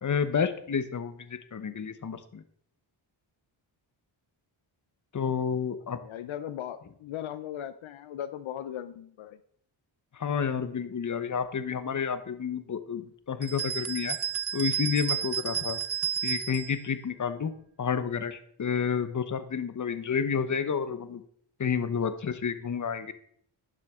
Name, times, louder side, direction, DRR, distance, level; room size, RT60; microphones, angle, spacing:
voice 1, 0.0-2.4 5.1-6.0 10.1-14.2 14.5-15.8 16.2-17.5 17.8-21.2 21.6-23.1, left 6 dB, 40° left, 11 dB, 1.0 m, -30 dB
voice 2, 5.9-9.4, left 10 dB, 75° left, 12 dB, 0.7 m, -38 dB
sound 1, 13.4-16.7, right 9 dB, 30° right, 0.7 m, -31 dB
11.5 x 7.4 x 3.7 m, 0.64 s
cardioid pair, 85°, 49 cm